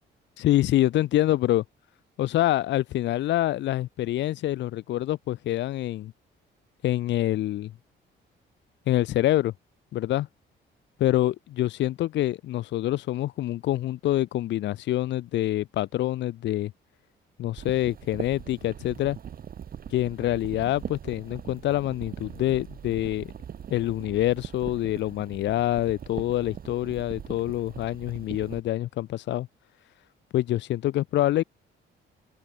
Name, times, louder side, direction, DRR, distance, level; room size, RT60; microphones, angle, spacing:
voice 1, 0.4-1.6 2.2-6.1 6.8-7.7 8.9-9.5 9.9-10.3 11.0-16.7 17.4-19.2 19.9-23.3 23.7-29.5 30.3-31.4, left 14 dB, 65° left, 0.5 m, -26 dB
sound 1, 17.6-28.6, right 8 dB, 50° right, 1.0 m, -41 dB
open air
cardioid pair, 90°, 20 cm